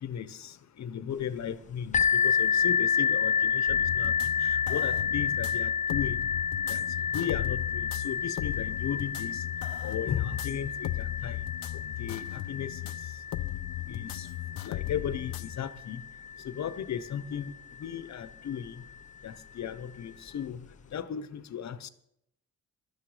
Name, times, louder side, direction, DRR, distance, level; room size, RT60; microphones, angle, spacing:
voice 1, 0.0-4.1 4.4-6.2 6.7-6.8 7.1-9.4 9.8-11.4 12.0-12.9 13.9-14.3 14.6-16.0 16.4-17.5 17.8-18.7 19.2-20.6 20.9-21.9, left 9 dB, 50° left, 15 dB, 1.0 m, -36 dB
sound 1, 1.9-17.5 18.2-18.3 18.9-19.0, left 7 dB, 20° left, 0.7 m, -30 dB
sound 2, 3.7-15.6, left 15 dB, 75° left, 0.7 m, -37 dB
16.0 x 12.5 x 5.0 m, 0.75 s
cardioid pair, 120°, 35 cm